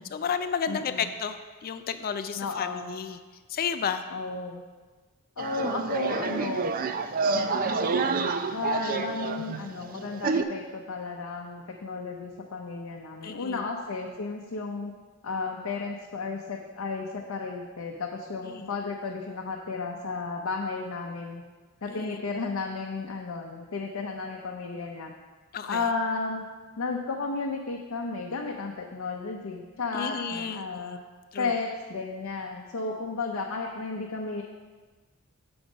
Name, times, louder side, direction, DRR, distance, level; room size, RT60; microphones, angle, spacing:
voice 1, 0.1-3.2 3.5-4.1 13.2-13.7 18.4-18.7 21.9-22.2 25.5-25.8 29.9-30.7 31.3-31.5, left 7 dB, 45° left, 10 dB, 0.4 m, -32 dB
voice 2, 0.7-1.1 2.3-2.9 4.1-4.6 5.4-6.7 7.2-8.1 8.5-14.9 15.2-21.4 21.8-25.1 25.7-26.5 26.8-31.0 31.4-34.4, left 4 dB, 80° left, 0 dB, 0.6 m, -33 dB
sound 1, 5.4-10.4, right 4 dB, 40° right, 0.4 m, -28 dB
6.9 x 5.3 x 5.1 m, 1.4 s
head